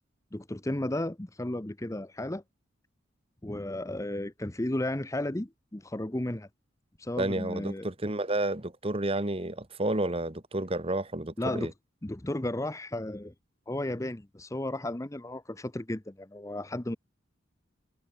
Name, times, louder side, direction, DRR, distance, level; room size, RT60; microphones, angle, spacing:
voice 1, 0.3-2.4 3.4-6.5 7.0-7.9 11.4-11.7 12.0-13.3 13.7-17.0, left 1 dB, 15° left, 0.7 m, -34 dB
voice 2, 7.2-11.7, right 1 dB, 30° right, 1.7 m, -30 dB
head